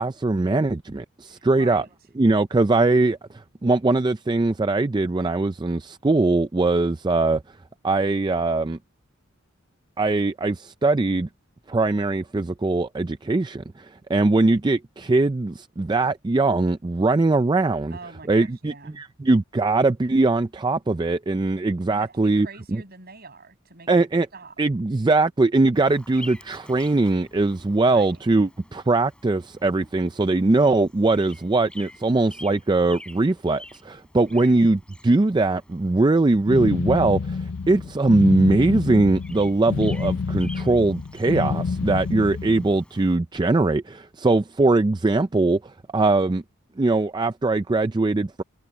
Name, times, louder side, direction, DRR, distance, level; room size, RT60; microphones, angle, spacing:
voice 1, 0.0-1.8 2.2-7.4 7.8-8.8 10.0-11.3 11.7-18.0 18.3-22.5 23.9-24.3 24.6-46.4 46.8-48.4, right 2 dB, 20° right, 0.4 m, -21 dB
voice 2, 1.3-1.9 17.9-19.0 21.9-24.6 27.8-28.4 34.3-34.6, right 3 dB, 45° right, 7.1 m, -44 dB
Bird vocalization bird call bird song, 25.7-43.2, left 1 dB, 5° left, 6.6 m, -48 dB
sound 1, 36.5-42.8, left 4 dB, 70° left, 0.6 m, -28 dB
head